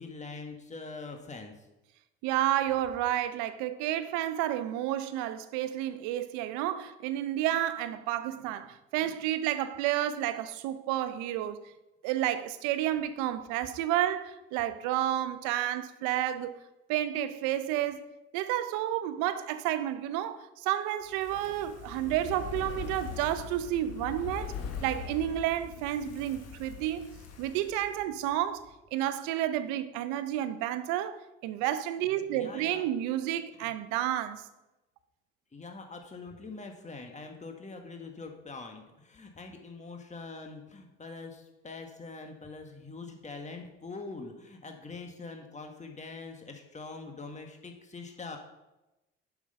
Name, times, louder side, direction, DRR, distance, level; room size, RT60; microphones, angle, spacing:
voice 1, 0.0-1.7 32.3-32.9 33.6-33.7 35.5-48.4, left 3 dB, 25° left, 1.5 m, -44 dB
voice 2, 2.2-11.6 12.0-16.6 16.9-18.1 18.3-24.5 24.8-27.1 27.4-34.5, right 12 dB, 85° right, 0.7 m, -31 dB
Fire, 21.0-28.4 28.7-28.8, left 6 dB, 60° left, 1.4 m, -42 dB
7.2 x 6.2 x 5.6 m
hypercardioid pair, 55°, 29 cm